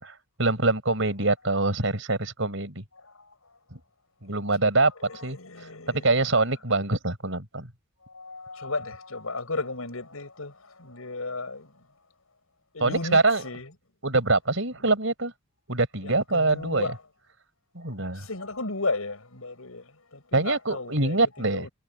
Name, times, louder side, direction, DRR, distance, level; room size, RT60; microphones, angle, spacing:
voice 1, 0.0-2.8 3.7-3.8 4.2-5.4 5.9-7.7 12.8-13.4 14.0-15.3 15.7-16.9 17.7-18.3 20.3-21.7, right 3 dB, 65° right, 5.4 m, -24 dB
voice 2, 5.1-6.2 8.1-11.7 12.7-13.7 16.0-17.0 17.9-21.2 21.5-21.7, left 3 dB, 85° left, 5.8 m, -35 dB
head